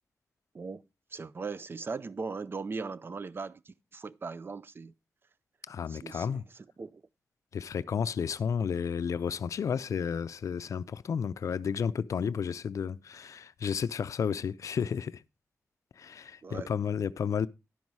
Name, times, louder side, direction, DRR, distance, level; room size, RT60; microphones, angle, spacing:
voice 1, 1.1-4.9 5.9-7.0 16.4-16.7, right 4 dB, 40° right, 0.5 m, -39 dB
voice 2, 5.7-6.4 7.5-15.2 16.0-17.5, left 7 dB, 70° left, 0.4 m, -32 dB
11.5 x 5.4 x 4.5 m
cardioid pair, 75°, 6 cm